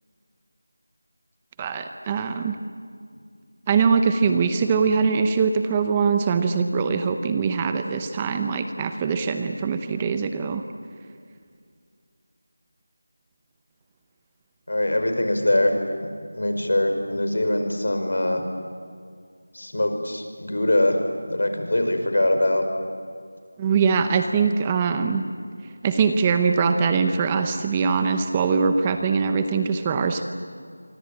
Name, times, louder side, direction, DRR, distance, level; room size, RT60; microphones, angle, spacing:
voice 1, 1.6-2.6 3.7-10.6 23.6-25.2 25.8-30.2, right 5 dB, 15° right, 7 dB, 0.8 m, -22 dB
voice 2, 14.7-15.8 16.3-18.4 19.5-21.0 21.3-22.6, left 1 dB, 75° left, 6 dB, 5.3 m, -22 dB
27.0 x 24.5 x 8.7 m, 2.2 s
figure-of-eight pair, 175°, 0 cm